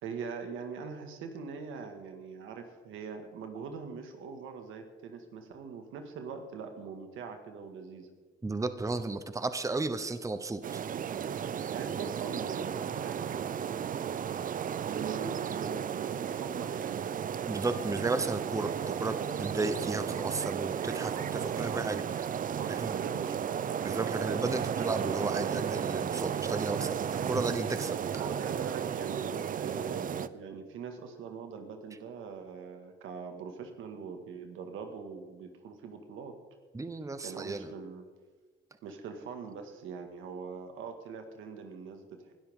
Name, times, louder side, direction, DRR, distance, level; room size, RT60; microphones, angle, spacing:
voice 1, 0.0-8.1 11.7-14.0 14.9-17.2 21.5-21.9 22.5-23.5 28.2-36.3 37.2-38.1 38.8-42.3, right 5 dB, 85° right, 5 dB, 2.0 m, -42 dB
voice 2, 8.4-10.8 17.5-22.0 22.7-22.9 23.8-27.0 27.2-28.3 36.7-37.7, right 3 dB, 15° right, 10 dB, 0.9 m, -34 dB
sound 1, 10.6-30.3, right 8 dB, 45° right, 0.5 m, -34 dB
20.0 x 12.5 x 3.8 m, 1.4 s
cardioid pair, 90°, 20 cm